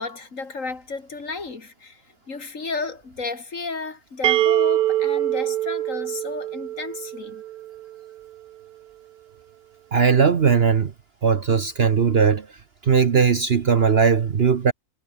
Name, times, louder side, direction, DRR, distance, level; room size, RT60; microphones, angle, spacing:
voice 1, 0.0-2.0 2.3-7.4, left 4 dB, 55° left, 3.0 m, -33 dB
sound 1, 4.2-8.0, right 13 dB, 80° right, 1.2 m, -24 dB
voice 2, 9.9-10.9 11.2-12.5 12.8-14.7, right 6 dB, 45° right, 1.1 m, -18 dB
omnidirectional pair, 1.6 m